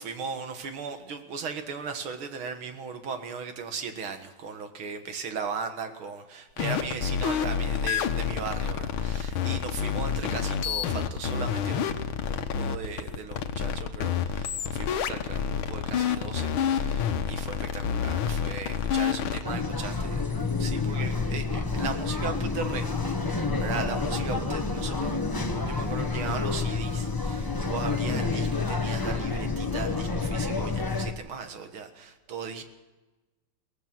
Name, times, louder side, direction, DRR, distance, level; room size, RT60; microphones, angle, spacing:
voice 1, 0.0-20.2 20.6-25.2 25.6-32.6, right 5 dB, 90° right, 7 dB, 2.5 m, -37 dB
sound 1, 6.6-19.6, left 8 dB, 85° left, 1.9 m, -28 dB
sound 2, 19.4-31.1, left 4 dB, 20° left, 0.6 m, -29 dB
23.0 x 18.5 x 6.1 m, 1.1 s
omnidirectional pair, 2.2 m